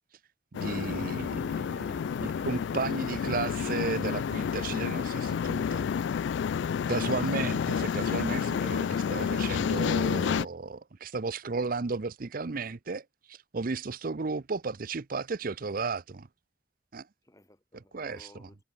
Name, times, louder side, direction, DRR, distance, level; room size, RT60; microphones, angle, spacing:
sound 1, 0.5-10.5, left 7 dB, 70° left, 0.3 m, -30 dB
voice 1, 0.6-1.8 2.2-5.9 6.9-16.3 16.9-17.1 17.7-18.5, right 4 dB, 50° right, 0.6 m, -34 dB
sound 2, 1.7-6.6, equal, ahead, 7.4 m, -52 dB
voice 2, 17.2-18.6, left 1 dB, 15° left, 2.7 m, -57 dB
head